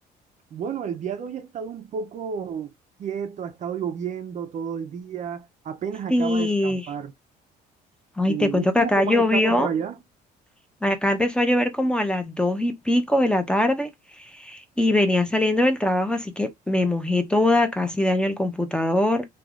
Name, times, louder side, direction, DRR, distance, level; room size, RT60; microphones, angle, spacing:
voice 1, 0.5-2.7 3.0-7.1 8.3-10.0, right 7 dB, 45° right, 0.4 m, -31 dB
voice 2, 6.1-6.8 8.2-9.7 10.8-13.9 14.4-19.2, left 1 dB, 5° left, 0.5 m, -22 dB
3.2 x 2.3 x 2.3 m
cardioid pair, 110°, 17 cm